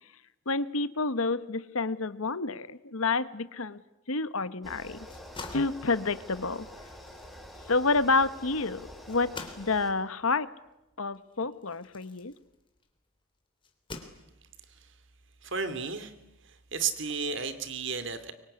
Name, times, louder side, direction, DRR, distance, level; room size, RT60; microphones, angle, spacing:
voice 1, 0.5-3.8 4.1-5.0 5.5-6.7 7.7-10.5 11.0-12.3, left 3 dB, 75° left, 14 dB, 1.2 m, -29 dB
sound 1, 4.6-9.9, equal, ahead, 4.0 m, -47 dB
sound 2, 5.0-13.0 13.6-14.7, left 3 dB, 25° left, 3.1 m, -48 dB
voice 2, 15.4-16.1 16.7-18.3, right 5 dB, 55° right, 11 dB, 2.5 m, -32 dB
24.0 x 24.0 x 9.8 m, 0.95 s
head